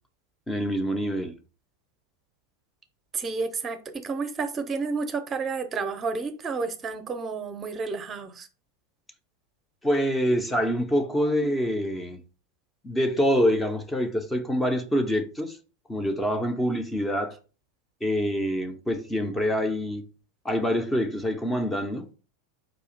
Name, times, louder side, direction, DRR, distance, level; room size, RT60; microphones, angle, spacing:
voice 1, 0.5-1.3 9.8-12.2 12.8-15.6 15.9-17.4 18.0-20.0 20.4-22.1, equal, 10° left, 0.6 m, -26 dB
voice 2, 3.1-8.5, right 4 dB, 25° right, 0.7 m, -31 dB
4.9 x 2.8 x 3.8 m
figure-of-eight pair, 85°, 0 cm